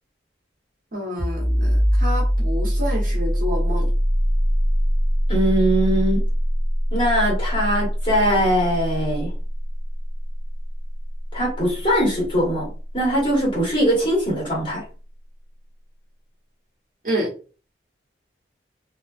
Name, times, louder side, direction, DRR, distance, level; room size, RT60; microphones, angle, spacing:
voice 1, 0.9-3.9 17.0-17.3, equal, 50° right, 0.9 m, -28 dB
sound 1, 1.2-12.6, equal, ahead, 1.0 m, -23 dB
voice 2, 5.3-6.2 6.9-9.3 11.3-14.8, equal, 30° left, 1.3 m, -21 dB
2.4 x 2.2 x 2.3 m
head